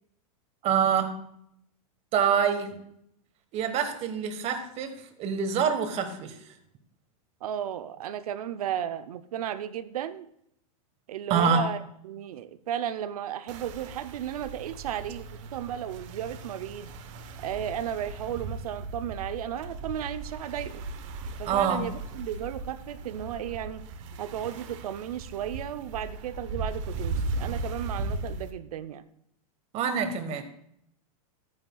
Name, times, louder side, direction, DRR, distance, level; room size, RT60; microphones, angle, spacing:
voice 1, 0.6-1.2 2.1-2.8 3.5-6.4 11.3-11.7 21.4-21.9 29.7-30.4, right 7 dB, 35° right, 7 dB, 1.4 m, -26 dB
voice 2, 7.4-10.3 11.1-11.8 12.0-16.9 17.4-20.9 21.4-23.9 24.2-29.0, right 10 dB, 80° right, 11 dB, 0.7 m, -34 dB
sound 1, 13.5-28.5, right 3 dB, 55° right, 1.1 m, -37 dB
13.0 x 9.4 x 2.3 m, 0.74 s
supercardioid pair, 135°, 19 cm